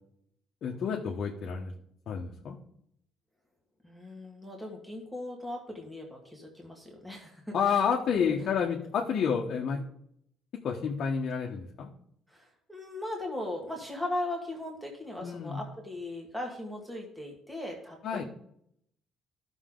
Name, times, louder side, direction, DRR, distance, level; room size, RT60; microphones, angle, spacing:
voice 1, 0.6-1.7 2.1-2.6 7.5-9.9 10.6-11.9 15.2-15.6 18.0-18.2, left 6 dB, 50° left, -1 dB, 1.2 m, -29 dB
voice 2, 3.8-7.8 8.1-8.3 12.3-18.0, left 1 dB, 5° right, -1 dB, 1.7 m, -38 dB
14.5 x 6.2 x 3.8 m, 0.71 s
cardioid pair, 160°, 0 cm